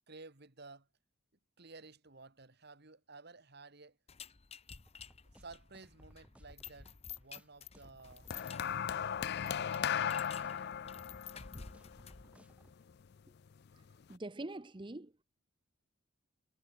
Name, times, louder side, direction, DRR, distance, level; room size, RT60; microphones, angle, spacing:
voice 1, 0.1-0.9 1.6-4.0 5.4-8.3 9.4-10.1, right 3 dB, 55° right, 1.9 m, -54 dB
sound 1, 4.1-12.3, left 7 dB, 30° left, 0.8 m, -52 dB
sound 2, 4.9-12.8, equal, 5° right, 3.0 m, -63 dB
sound 3, 8.3-12.7 13.7-13.9, left 8 dB, 50° left, 0.4 m, -37 dB
voice 2, 14.1-15.2, right 2 dB, 25° right, 0.8 m, -44 dB
head